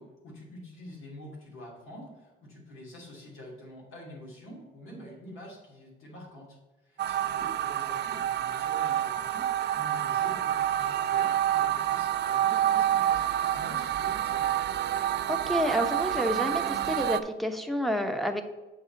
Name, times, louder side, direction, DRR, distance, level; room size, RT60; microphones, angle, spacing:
voice 1, 0.0-13.2 13.5-14.5, equal, 90° left, -2 dB, 2.7 m, -47 dB
sound 1, 7.0-17.2, right 11 dB, 60° right, 0.5 m, -28 dB
voice 2, 15.3-18.4, equal, ahead, 4 dB, 0.9 m, -29 dB
8.0 x 5.5 x 3.9 m, 1.1 s
cardioid pair, 90°, 20 cm